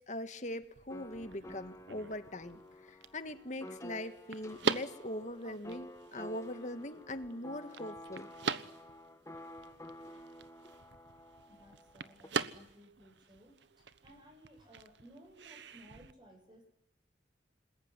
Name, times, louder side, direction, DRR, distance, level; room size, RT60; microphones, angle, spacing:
voice 1, 0.0-8.3, left 1 dB, 40° left, 9 dB, 1.8 m, -41 dB
sound 1, 0.6-16.1, right 4 dB, 80° right, 1.1 m, -43 dB
sound 2, 0.9-12.3, left 1 dB, 15° left, 1.5 m, -51 dB
voice 2, 11.5-16.7, equal, 25° right, 3 dB, 7.9 m, -59 dB
28.0 x 21.0 x 9.9 m, 0.81 s
head